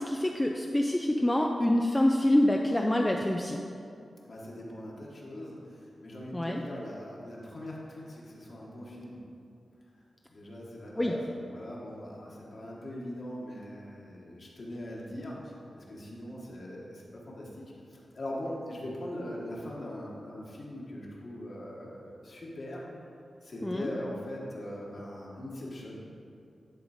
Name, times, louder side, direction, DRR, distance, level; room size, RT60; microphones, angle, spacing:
voice 1, 0.0-3.6 6.3-6.6 11.0-11.1 23.6-23.9, left 1 dB, 10° left, 1 dB, 0.3 m, -26 dB
voice 2, 4.2-9.2 10.3-22.9 23.4-26.0, left 1 dB, 45° left, -4 dB, 1.3 m, -41 dB
10.5 x 4.0 x 4.9 m, 2.6 s
wide cardioid pair, 160°, 0 cm